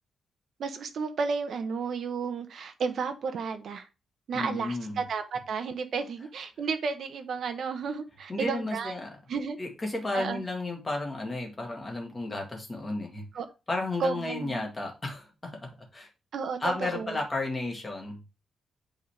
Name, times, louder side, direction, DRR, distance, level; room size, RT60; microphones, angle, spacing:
voice 1, 0.6-3.9 4.3-8.9 9.3-9.6 10.1-10.4 13.3-13.5 14.0-14.7 16.3-17.2, right 5 dB, 55° right, 7 dB, 0.9 m, -32 dB
voice 2, 4.3-5.0 8.3-9.1 9.6-13.2 13.7-16.1 16.6-18.2, left 2 dB, 20° left, 1 dB, 1.7 m, -33 dB
8.3 x 3.9 x 3.3 m, 0.28 s
wide cardioid pair, 180°, 0 cm